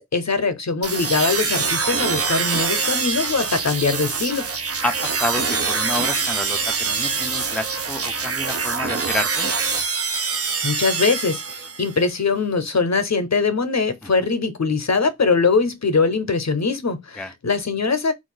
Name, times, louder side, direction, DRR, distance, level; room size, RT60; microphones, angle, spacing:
voice 1, 0.0-4.4 10.6-11.4 11.8-18.1, left 4 dB, 65° left, 0.7 m, -22 dB
sound 1, 0.8-12.0, right 5 dB, 50° right, 0.5 m, -24 dB
voice 2, 4.8-9.5 14.2-14.3 17.2-17.3, left 2 dB, 5° left, 0.4 m, -29 dB
2.4 x 2.2 x 3.7 m
wide cardioid pair, 40°, 30 cm